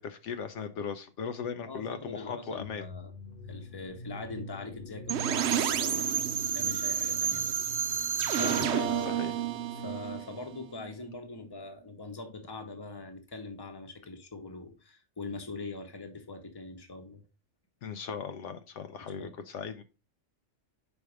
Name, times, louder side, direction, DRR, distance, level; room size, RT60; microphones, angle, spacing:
voice 1, 0.0-2.9 8.3-9.4 17.8-19.8, left 6 dB, 75° left, 0.9 m, -38 dB
voice 2, 1.7-3.1 3.5-6.1 6.5-7.5 8.4-9.2 9.7-17.2 19.2-19.3, left 2 dB, 20° left, 1.0 m, -42 dB
sound 1, 2.6-10.3, equal, 45° left, 1.2 m, -45 dB
sound 2, 5.1-10.9, right 8 dB, 65° right, 0.8 m, -30 dB
5.3 x 4.5 x 4.7 m
omnidirectional pair, 1.3 m